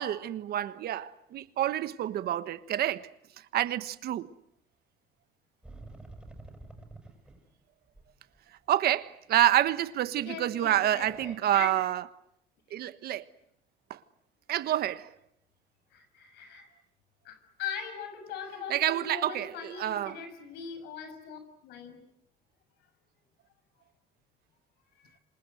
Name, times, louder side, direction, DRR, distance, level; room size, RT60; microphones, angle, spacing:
voice 1, 0.0-4.3 8.7-12.0 12.7-13.3 13.9-14.0 14.5-15.1 18.7-20.2, right 12 dB, 65° right, 1.3 m, -28 dB
sound 1, 5.6-7.6 7.9-8.1 8.3-8.4 9.4-9.5 10.9-11.4, right 2 dB, 5° right, 7.2 m, -48 dB
voice 2, 10.2-11.8 15.9-16.7 17.2-22.0 25.0-25.2, left 6 dB, 90° left, 6.6 m, -41 dB
28.0 x 26.5 x 7.9 m
cardioid pair, 110°, 17 cm